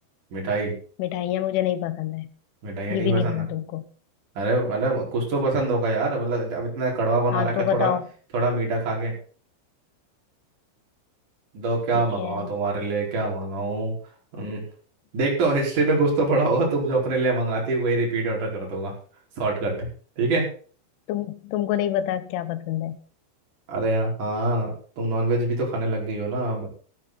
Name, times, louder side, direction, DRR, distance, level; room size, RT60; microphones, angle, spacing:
voice 1, 0.3-0.7 2.6-3.4 4.4-7.9 8.3-9.1 11.5-13.9 14.3-14.6 15.1-18.9 19.4-19.9 20.2-20.5 23.7-24.7 25.0-26.7, right 2 dB, 40° right, -1 dB, 6.2 m, -24 dB
voice 2, 1.0-2.3 2.9-3.9 7.3-8.0 11.9-12.5 21.1-23.0, left 11 dB, 80° left, 13 dB, 3.6 m, -27 dB
15.0 x 13.5 x 4.2 m, 0.42 s
omnidirectional pair, 5.6 m